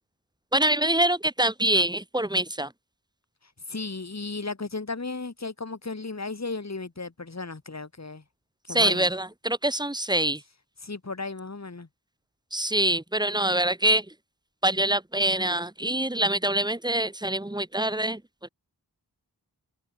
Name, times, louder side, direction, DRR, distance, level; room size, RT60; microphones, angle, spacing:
voice 1, 0.5-2.7 8.7-10.4 12.5-14.1 14.6-18.2, right 1 dB, 10° right, 0.8 m, -25 dB
voice 2, 3.7-8.2 8.6-9.1 10.8-11.9, left 3 dB, 40° left, 2.0 m, -35 dB
wide cardioid pair, 45°, 40 cm